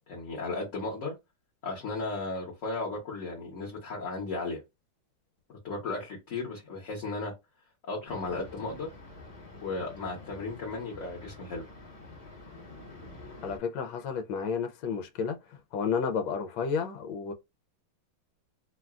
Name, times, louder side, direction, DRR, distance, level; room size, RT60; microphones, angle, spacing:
voice 1, 0.1-1.1 1.6-4.6 5.5-7.3 7.9-8.9 9.6-11.6, left 3 dB, 45° left, 1.1 m, -35 dB
sound 1, 8.1-13.6, left 2 dB, 25° left, 1.0 m, -48 dB
voice 2, 13.4-15.4 15.7-17.3, left 6 dB, 75° left, 1.3 m, -31 dB
3.7 x 2.3 x 2.3 m
omnidirectional pair, 2.3 m